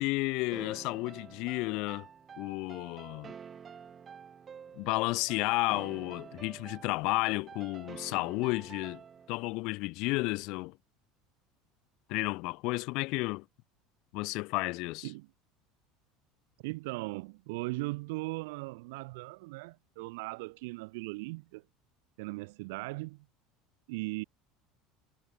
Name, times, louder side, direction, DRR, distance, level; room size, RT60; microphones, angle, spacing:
voice 1, 0.0-2.1 2.4-3.3 4.7-9.0 9.3-10.8 12.1-13.4 14.1-15.1, left 24 dB, 60° left, 1.0 m, -32 dB
sound 1, 0.5-9.4, right 7 dB, 25° right, 1.8 m, -49 dB
voice 2, 16.6-21.6 22.2-23.3 23.9-24.2, right 24 dB, 85° right, 0.5 m, -38 dB
cardioid pair, 145°, 0 cm